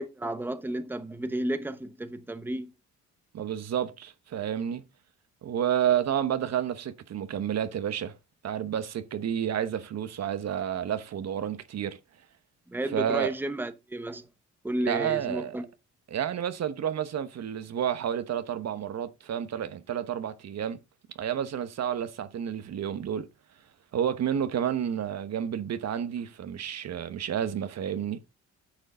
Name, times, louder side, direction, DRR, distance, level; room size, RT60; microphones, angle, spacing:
voice 1, 0.0-2.7 12.7-14.3 14.6-15.7, right 1 dB, 5° right, 1.0 m, -32 dB
voice 2, 3.3-4.8 5.4-8.1 8.4-12.0 12.9-13.3 14.8-15.6 16.1-20.8 21.1-23.3 23.9-28.2, right 9 dB, 60° right, 1.1 m, -30 dB
9.8 x 6.4 x 3.7 m
cardioid pair, 90°, 30 cm